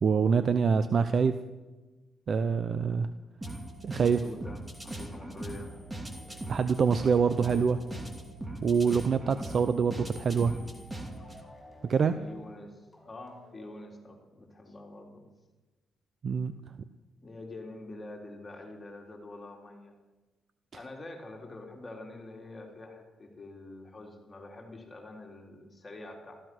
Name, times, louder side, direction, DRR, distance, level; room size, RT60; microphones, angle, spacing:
voice 1, 0.0-1.4 2.3-3.1 3.8-4.2 6.5-7.8 8.6-10.5 11.8-12.1 16.2-16.5, right 6 dB, 50° right, 11 dB, 0.7 m, -25 dB
sound 1, 3.4-11.4, right 1 dB, 10° right, 2.5 m, -40 dB
voice 2, 4.0-5.7 12.1-15.3 17.2-19.9 20.7-26.4, left 2 dB, 25° left, 1 dB, 3.7 m, -46 dB
sound 2, 5.2-14.4, equal, 5° left, 5.8 m, -56 dB
15.0 x 14.5 x 6.2 m, 1.2 s
cardioid pair, 90°, 0 cm